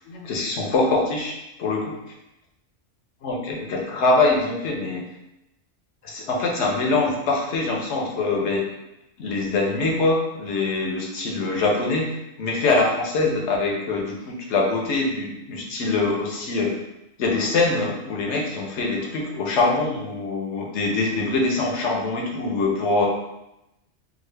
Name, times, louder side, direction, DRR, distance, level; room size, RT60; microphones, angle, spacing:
voice 1, 0.1-1.3 1.6-2.0 3.2-5.1 6.0-8.7 9.2-12.1 12.4-16.8 17.2-23.1, left 3 dB, 70° left, -1 dB, 0.9 m, -23 dB
3.6 x 2.0 x 3.2 m, 0.90 s
omnidirectional pair, 1.3 m